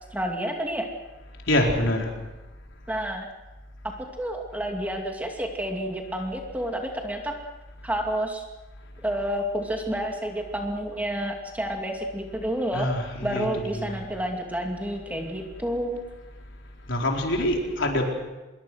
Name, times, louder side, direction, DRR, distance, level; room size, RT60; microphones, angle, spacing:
voice 1, 0.1-0.9 2.9-3.3 3.8-7.3 7.8-8.4 9.0-12.9 13.2-16.0, right 1 dB, 10° right, 2 dB, 2.4 m, -29 dB
voice 2, 1.5-2.1 12.7-14.0 16.9-18.0, left 1 dB, 65° left, 1 dB, 4.6 m, -25 dB
26.0 x 22.0 x 6.4 m, 1.1 s
head